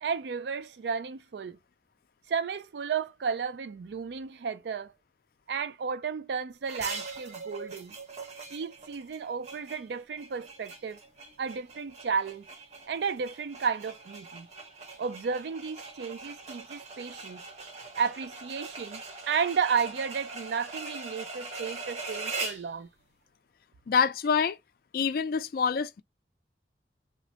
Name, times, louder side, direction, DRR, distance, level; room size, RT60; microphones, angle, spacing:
voice 1, 0.0-1.6 2.3-4.9 5.5-8.0 8.5-11.0 11.4-12.5 12.9-14.5 15.0-17.4 18.0-22.9, right 6 dB, 70° right, 0.4 m, -33 dB
sound 1, 6.6-22.7, right 3 dB, 40° right, 0.7 m, -41 dB
voice 2, 23.9-24.6 24.9-26.0, left 6 dB, 55° left, 0.3 m, -26 dB
3.2 x 2.1 x 2.7 m
head